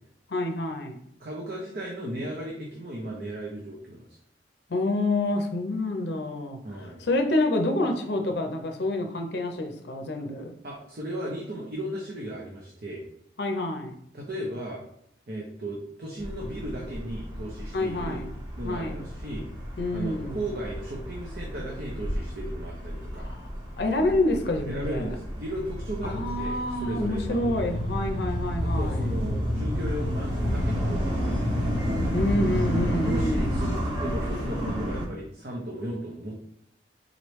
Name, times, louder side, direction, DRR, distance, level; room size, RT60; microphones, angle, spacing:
voice 1, 0.3-1.0 4.7-6.6 7.0-10.5 13.4-14.0 17.7-18.3 18.6-19.0 19.8-20.4 23.1-23.5 23.8-25.1 26.0-29.1 32.1-33.5, left 2 dB, 60° left, 4 dB, 0.6 m, -28 dB
voice 2, 1.2-4.2 6.6-7.1 10.6-13.0 14.1-14.8 15.3-18.2 18.6-19.5 19.9-23.3 24.7-27.6 28.6-31.7 32.9-36.4, right 1 dB, 55° right, -3 dB, 0.7 m, -36 dB
sound 1, 16.2-35.0, equal, 25° right, 1.3 m, -30 dB
3.9 x 3.2 x 3.1 m, 0.73 s
head